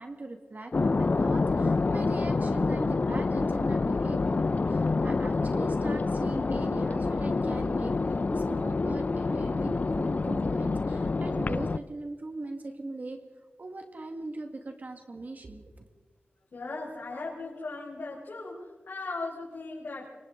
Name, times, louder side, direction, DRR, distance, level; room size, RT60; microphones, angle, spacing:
voice 1, 0.0-7.9 8.3-13.2 13.6-15.8, right 2 dB, 50° right, 4 dB, 2.0 m, -40 dB
sound 1, 0.7-11.8, left 3 dB, 45° left, 0.6 m, -27 dB
voice 2, 16.5-20.0, left 3 dB, 75° left, -5 dB, 5.7 m, -38 dB
27.0 x 24.5 x 3.9 m, 1.4 s
wide cardioid pair, 90°, 4 cm